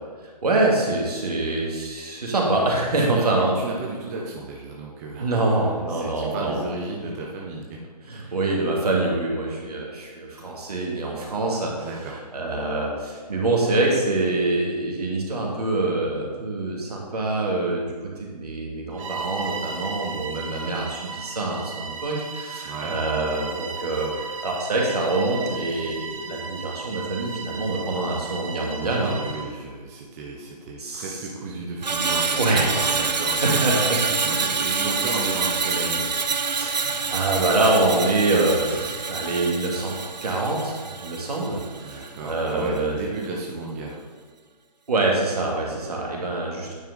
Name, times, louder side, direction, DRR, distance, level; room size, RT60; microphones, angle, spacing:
voice 1, 0.4-3.6 5.2-6.6 8.1-11.9 12.3-29.1 30.8-31.1 32.3-34.6 36.5-40.0 40.2-43.1 44.9-46.7, right 2 dB, 65° right, -2 dB, 2.1 m, -25 dB
voice 2, 3.0-7.8 8.2-8.4 11.8-12.2 22.6-23.0 29.0-33.8 34.2-36.1 41.8-44.0, right 3 dB, 25° right, -2 dB, 0.8 m, -34 dB
Bowed string instrument, 18.9-29.5, right 5 dB, 50° right, 1.0 m, -36 dB
Screech, 31.8-42.2 42.5-42.8, right 4 dB, 85° right, 0.6 m, -27 dB
9.1 x 4.6 x 4.0 m, 1.5 s
figure-of-eight pair, 145°, 21 cm